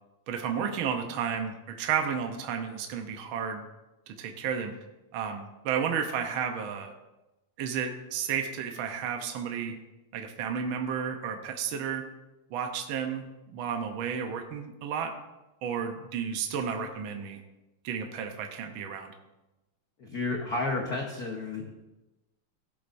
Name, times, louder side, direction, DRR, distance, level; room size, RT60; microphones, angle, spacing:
voice 1, 0.3-3.6 4.1-4.7 5.1-6.9 7.6-9.7 10.1-12.1 12.5-15.1 15.6-17.4 17.8-19.1, right 7 dB, 70° right, 4 dB, 1.2 m, -32 dB
voice 2, 20.0-21.7, left 3 dB, 85° left, 0 dB, 0.8 m, -31 dB
17.0 x 7.6 x 2.6 m, 1.0 s
omnidirectional pair, 3.3 m